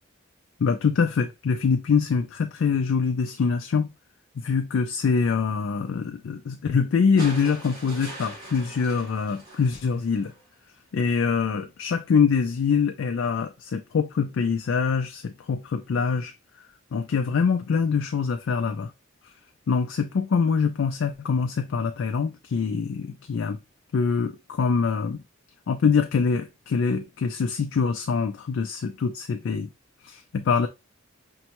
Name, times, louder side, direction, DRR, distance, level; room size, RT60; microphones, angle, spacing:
voice 1, 0.6-3.9 4.4-10.3 10.9-16.3 16.9-18.9 19.7-23.6 23.9-25.2 25.7-29.7 30.0-30.7, left 5 dB, 70° left, 0.4 m, -24 dB
sound 1, 7.2-10.5 11.8-11.9, right 1 dB, 50° right, 2.3 m, -42 dB
5.2 x 2.2 x 2.9 m
head